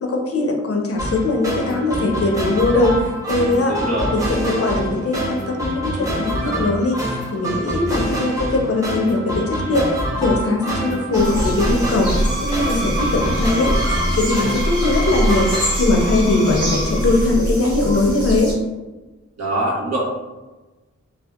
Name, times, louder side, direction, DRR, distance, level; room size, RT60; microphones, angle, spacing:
voice 1, 0.0-3.0 3.3-3.8 4.1-9.9 10.2-18.5, left 2 dB, 55° left, 2 dB, 0.5 m, -20 dB
sound 1, 1.0-15.7, equal, 10° right, 0.7 m, -26 dB
voice 2, 3.6-4.1 19.4-20.0, right 1 dB, 60° right, -5 dB, 0.9 m, -23 dB
sound 2, 11.1-18.5, equal, 85° right, 1.4 m, -24 dB
Screech, 12.0-17.4, equal, 40° right, 1.3 m, -29 dB
2.6 x 2.3 x 2.3 m, 1.1 s
wide cardioid pair, 45°, 29 cm